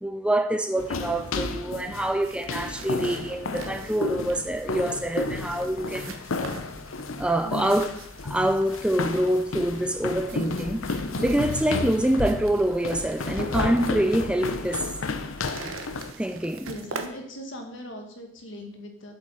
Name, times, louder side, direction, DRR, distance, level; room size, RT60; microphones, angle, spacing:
voice 1, 0.0-6.2 7.2-7.9 8.2-10.8 11.2-14.9 16.2-16.7, right 1 dB, 5° right, 0.3 m, -25 dB
sound 1, 0.8-16.1, left 3 dB, 90° left, 0.8 m, -32 dB
sound 2, 2.2-17.1, right 4 dB, 85° right, 1.1 m, -45 dB
voice 2, 7.4-7.8 16.6-19.1, equal, 70° left, 1.9 m, -38 dB
7.7 x 7.7 x 5.7 m
head